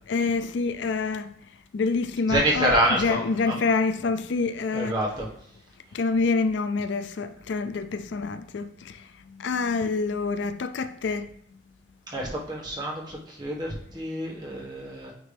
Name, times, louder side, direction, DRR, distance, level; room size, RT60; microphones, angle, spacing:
voice 1, 0.1-1.3 1.7-5.0 5.9-8.9 9.4-11.3, left 4 dB, 85° left, 0.4 m, -27 dB
voice 2, 2.3-3.7 4.7-5.3 12.1-15.1, right 1 dB, 25° right, 1.5 m, -27 dB
9.0 x 3.1 x 3.4 m
head